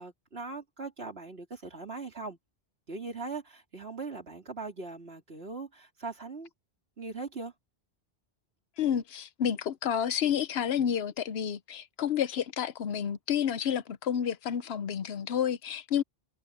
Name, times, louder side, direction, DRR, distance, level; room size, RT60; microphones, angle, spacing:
voice 1, 0.0-2.4 2.9-6.5 7.0-7.5, right 3 dB, 75° right, 3.7 m, -40 dB
voice 2, 8.8-16.0, left 9 dB, 80° left, 1.0 m, -30 dB
omnidirectional pair, 1.1 m